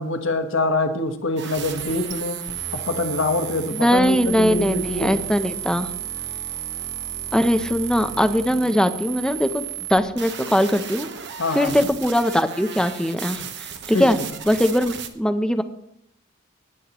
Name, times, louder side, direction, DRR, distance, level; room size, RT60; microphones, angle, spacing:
voice 1, 0.0-2.4 2.7-5.2 8.5-8.7 11.4-11.9 13.9-14.1, left 2 dB, 65° left, 6 dB, 1.3 m, -25 dB
sound 1, 1.4-15.1, right 9 dB, 55° right, 1.1 m, -33 dB
voice 2, 3.7-5.9 7.3-9.6 9.9-11.1 11.5-14.2 14.5-15.6, equal, 5° left, 9 dB, 0.6 m, -21 dB
17.5 x 10.0 x 3.0 m, 0.73 s
head